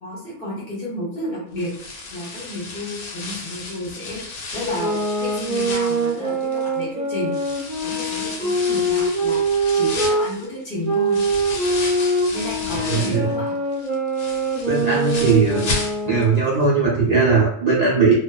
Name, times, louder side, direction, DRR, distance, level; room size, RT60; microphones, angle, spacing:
voice 1, 0.0-4.2 4.5-7.3 7.8-9.4 9.7-11.2 12.3-13.5, left 1 dB, 45° left, -5 dB, 0.9 m, -31 dB
sound 1, 1.6-6.8 7.3-13.3 13.7-16.4 16.6-16.7 17.2-17.3, left 3 dB, 90° left, 1.1 m, -33 dB
sound 2, 4.6-10.3 10.8-16.4, right 2 dB, 40° right, 0.6 m, -23 dB
voice 2, 12.7-13.3 14.6-15.7 16.1-18.1, right 4 dB, 85° right, -7 dB, 0.3 m, -19 dB
2.5 x 2.2 x 2.2 m, 0.70 s
omnidirectional pair, 1.6 m